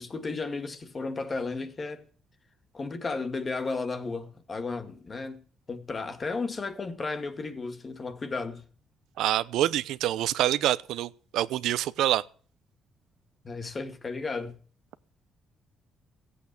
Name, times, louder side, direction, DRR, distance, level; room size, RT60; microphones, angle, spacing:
voice 1, 0.0-2.0 2.7-5.4 5.7-8.6 13.4-14.6, left 3 dB, 35° left, 2.0 m, -34 dB
voice 2, 9.2-12.2, right 13 dB, 85° right, 0.7 m, -26 dB
15.5 x 8.5 x 7.0 m
cardioid pair, 90°, 0 cm